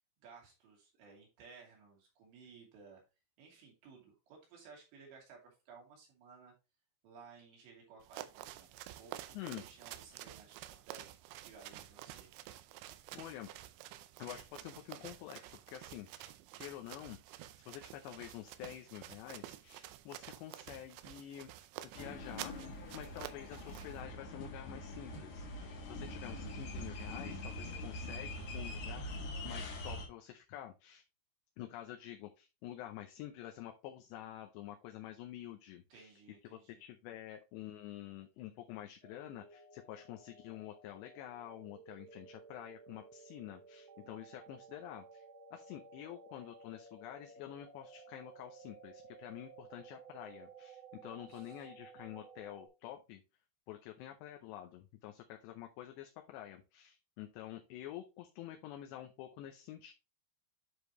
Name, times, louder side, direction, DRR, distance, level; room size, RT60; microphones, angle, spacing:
voice 1, 0.2-3.0 3.4-6.5 7.0-8.7 9.0-12.3 26.1-26.5 35.9-36.8 51.3-51.7, right 5 dB, 65° right, -2 dB, 4.8 m, -58 dB
sound 1, 8.0-24.0, right 14 dB, 80° right, 2.7 m, -50 dB
voice 2, 13.1-13.5 14.2-17.4 17.6-21.7 21.9-22.6 22.9-29.1 29.4-31.0 31.6-36.1 36.4-45.2 45.5-53.2 53.7-59.9, left 12 dB, 80° left, 4 dB, 2.7 m, -48 dB
sound 2, 21.9-30.1, left 1 dB, 55° left, 2.4 m, -43 dB
sound 3, 39.0-52.7, right 4 dB, 45° right, 2.7 m, -56 dB
9.8 x 5.1 x 3.0 m, 0.27 s
omnidirectional pair, 5.5 m